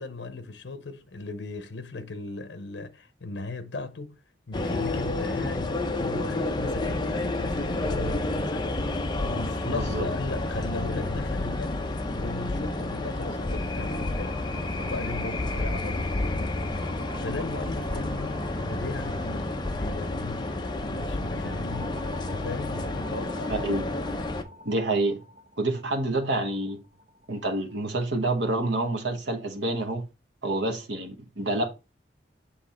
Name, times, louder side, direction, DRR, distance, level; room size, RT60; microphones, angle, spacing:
voice 1, 0.0-4.2 4.5-14.4 14.8-20.5 20.8-23.6, left 3 dB, 80° left, 0.7 m, -37 dB
sound 1, 4.5-24.4, left 2 dB, 25° left, 0.6 m, -30 dB
voice 2, 9.6-10.1 23.5-23.8 24.6-25.2 25.6-26.8 27.3-30.0 30.4-31.7, right 2 dB, 90° right, 1.1 m, -28 dB
sound 2, 13.8-27.8, equal, 40° right, 1.2 m, -47 dB
7.3 x 3.5 x 4.2 m
head